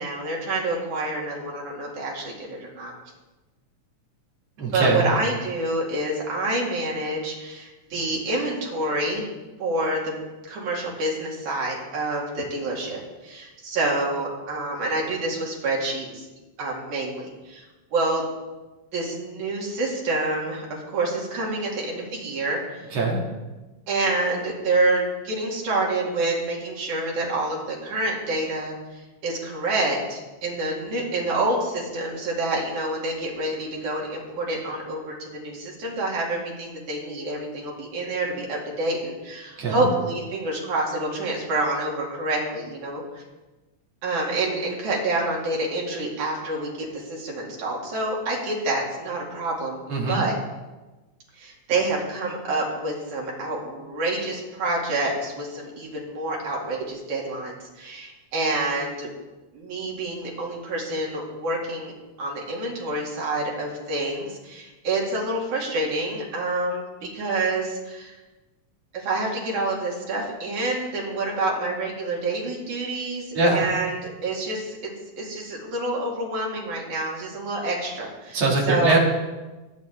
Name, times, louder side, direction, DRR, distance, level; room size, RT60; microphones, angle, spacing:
voice 1, 0.0-2.9 4.7-9.3 9.6-10.1 10.5-16.3 16.6-17.7 17.9-18.2 18.9-22.9 23.9-43.2 44.0-49.8 50.1-50.4 51.3-59.1 59.5-61.9 62.2-68.2 68.9-79.0, right 2 dB, 90° right, -2 dB, 4.0 m, -27 dB
voice 2, 4.6-5.1 22.9-23.2 39.6-39.9 49.9-50.2 73.3-73.7 78.3-79.0, right 3 dB, 55° right, -2 dB, 3.4 m, -22 dB
20.5 x 9.1 x 3.6 m, 1.1 s
omnidirectional pair, 3.3 m